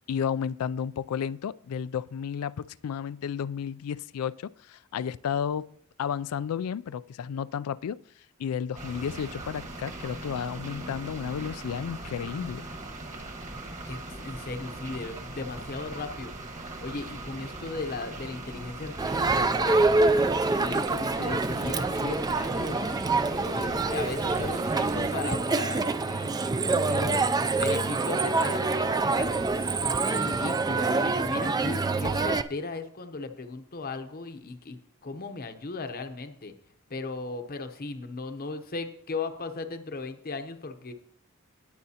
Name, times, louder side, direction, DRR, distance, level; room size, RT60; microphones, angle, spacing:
voice 1, 0.1-5.7 6.0-8.0 8.4-12.7, left 7 dB, 80° left, 0.3 m, -32 dB
sound 1, 8.8-25.2, right 2 dB, 35° right, 1.5 m, -40 dB
voice 2, 13.8-20.3 20.6-27.3 27.6-29.8 30.0-34.8 35.0-36.5 36.9-40.9, left 3 dB, 45° left, 0.8 m, -37 dB
Crowd, 19.0-32.4, right 3 dB, 20° right, 0.3 m, -26 dB
19.0 x 7.8 x 2.8 m
head